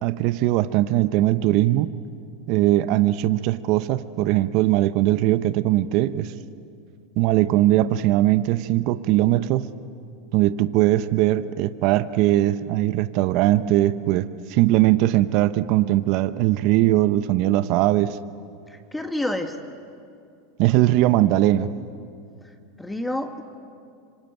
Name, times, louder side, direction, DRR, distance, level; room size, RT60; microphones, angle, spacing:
voice 1, 0.0-1.9 2.5-6.3 7.2-9.7 10.3-18.2 20.6-21.7, right 15 dB, 55° right, 12 dB, 0.9 m, -20 dB
voice 2, 18.7-19.6 22.8-23.4, left 1 dB, 5° left, 5 dB, 1.8 m, -28 dB
26.0 x 25.0 x 9.1 m, 2.4 s
supercardioid pair, 110°, 0 cm